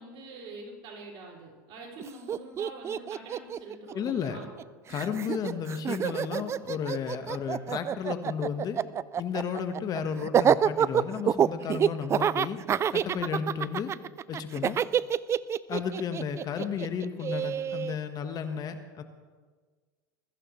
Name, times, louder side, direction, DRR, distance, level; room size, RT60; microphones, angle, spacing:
voice 1, 0.0-4.5, right 3 dB, 55° right, -1 dB, 5.2 m, -45 dB
Laughter, 2.0-2.1 2.3-4.6 4.9-17.9, right 8 dB, 25° right, 0.4 m, -27 dB
voice 2, 3.9-4.4 4.9-8.8 9.2-12.6 12.9-13.9 14.3-14.8 15.7-19.0, left 7 dB, 40° left, 8 dB, 1.3 m, -33 dB
21.5 x 14.5 x 3.2 m, 1.5 s
hypercardioid pair, 100°, 10 cm